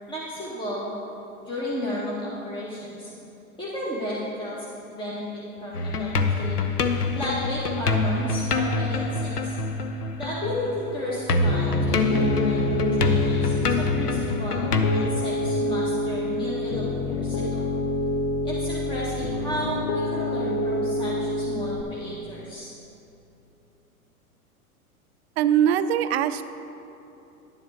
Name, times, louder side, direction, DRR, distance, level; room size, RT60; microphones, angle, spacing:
voice 1, 0.1-0.9 1.4-3.1 3.6-6.6 7.1-9.5 10.2-14.6 14.9-17.7 18.4-22.7, equal, 10° left, -7 dB, 1.3 m, -33 dB
sound 1, 5.7-10.8 11.1-15.1, left 3 dB, 85° left, 0.8 m, -25 dB
Piano, 11.4-21.8, left 2 dB, 50° left, 0.9 m, -27 dB
voice 2, 25.4-26.4, right 10 dB, 45° right, 11 dB, 0.5 m, -21 dB
11.0 x 7.4 x 4.4 m, 2.9 s
figure-of-eight pair, 100°, 45 cm